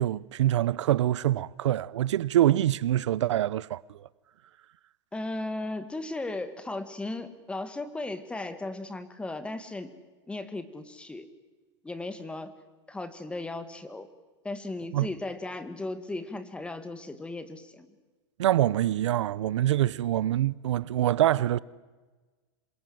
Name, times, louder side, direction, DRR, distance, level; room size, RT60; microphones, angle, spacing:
voice 1, 0.0-4.1 14.9-15.1 18.4-21.6, right 13 dB, 85° right, 0.8 m, -25 dB
voice 2, 5.1-9.9 10.3-11.3 11.8-12.5 12.9-14.1 14.4-17.9, left 2 dB, 5° left, 2.0 m, -36 dB
27.0 x 22.5 x 7.8 m
supercardioid pair, 140°, 15 cm